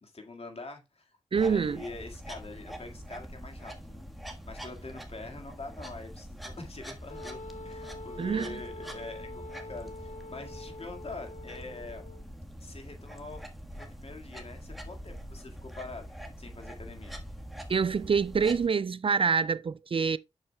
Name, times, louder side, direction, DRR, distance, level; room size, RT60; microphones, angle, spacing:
voice 1, 0.0-4.1 4.4-12.0 12.6-13.5 13.7-17.2, left 3 dB, 55° left, 1.8 m, -44 dB
sound 1, 1.3-18.7, equal, ahead, 1.4 m, -44 dB
voice 2, 1.3-1.8 8.2-8.6 17.7-20.2, right 6 dB, 50° right, 0.3 m, -26 dB
Wind instrument woodwind instrument, 7.1-12.2, left 2 dB, 75° left, 0.6 m, -45 dB
8.7 x 6.5 x 2.2 m
cardioid pair, 40°, 12 cm